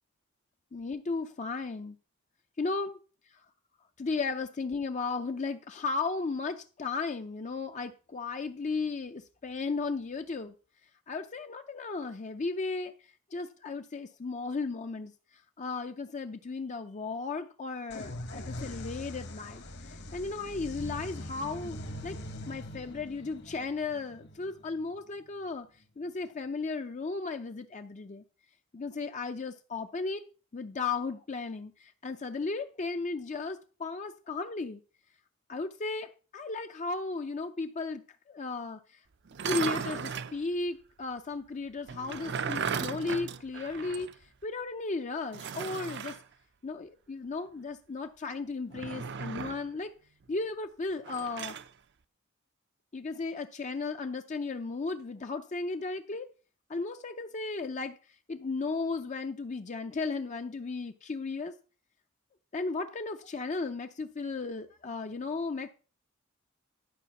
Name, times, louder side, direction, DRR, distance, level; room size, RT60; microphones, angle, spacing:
voice 1, 0.7-2.0 2.6-3.0 4.0-10.5 11.1-12.9 13.3-15.1 15.6-21.8 22.0-22.2 22.5-25.7 26.0-28.2 28.7-30.2 30.5-34.8 35.5-38.0 38.3-38.8 39.4-44.1 44.4-46.2 46.6-49.9 50.3-51.5 52.9-56.3 56.7-58.0 58.3-61.5 62.5-65.7, left 3 dB, 35° left, 7 dB, 0.5 m, -35 dB
sound 1, 17.9-25.5, left 1 dB, 60° left, 1.4 m, -42 dB
sound 2, 39.3-40.4 41.9-44.1 44.4-44.5 45.3-46.2 48.7-49.7 51.0-51.7, right 6 dB, 60° right, 0.6 m, -36 dB
12.0 x 5.0 x 5.9 m, 0.37 s
head